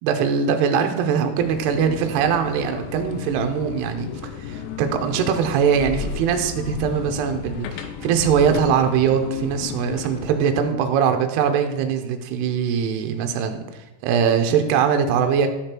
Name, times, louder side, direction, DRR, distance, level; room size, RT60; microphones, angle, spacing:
voice 1, 0.0-4.1 4.4-13.6 14.0-15.5, right 7 dB, 80° right, 6 dB, 2.6 m, -21 dB
sound 1, 1.4-10.4, left 7 dB, 85° left, 2.8 m, -33 dB
12.5 x 5.1 x 4.5 m, 1.0 s
omnidirectional pair, 5.3 m